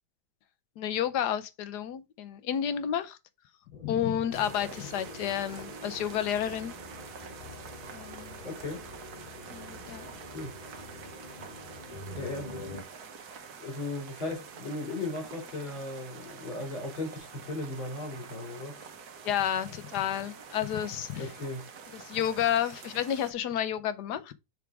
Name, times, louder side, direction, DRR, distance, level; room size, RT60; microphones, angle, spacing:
voice 1, 0.8-3.2 3.8-6.7 7.9-8.4 9.5-10.1 19.2-21.3 21.9-24.3, left 10 dB, 65° left, 1.2 m, -31 dB
sound 1, 3.7-12.8, left 2 dB, 25° left, 1.2 m, -46 dB
sound 2, 4.3-23.3, right 6 dB, 60° right, 1.5 m, -47 dB
voice 2, 8.4-8.8 10.3-10.5 12.1-12.7 13.6-18.7 21.2-21.6, left 2 dB, 85° left, 3.4 m, -37 dB
6.9 x 3.6 x 4.7 m
omnidirectional pair, 2.1 m